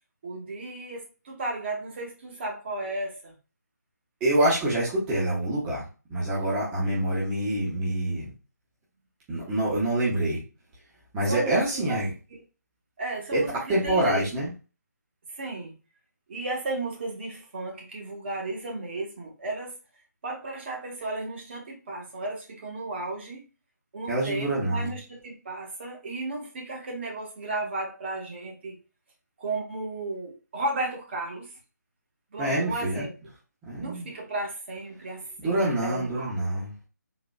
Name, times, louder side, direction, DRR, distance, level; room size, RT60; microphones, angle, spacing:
voice 1, 0.2-3.3 11.3-12.0 12.3-12.4 13.0-14.3 15.3-15.7 16.3-19.8 20.2-23.4 23.9-28.8 29.4-31.5 32.3-33.1 33.8-36.3, right 2 dB, 40° right, 0 dB, 1.1 m, -34 dB
voice 2, 4.2-8.3 9.3-10.4 11.1-12.1 13.3-13.4 13.7-14.5 24.1-25.0 32.4-33.1 33.7-34.1 35.4-36.7, right 1 dB, 15° right, -8 dB, 0.9 m, -26 dB
3.9 x 2.8 x 2.3 m, 0.33 s
figure-of-eight pair, 155°, 10 cm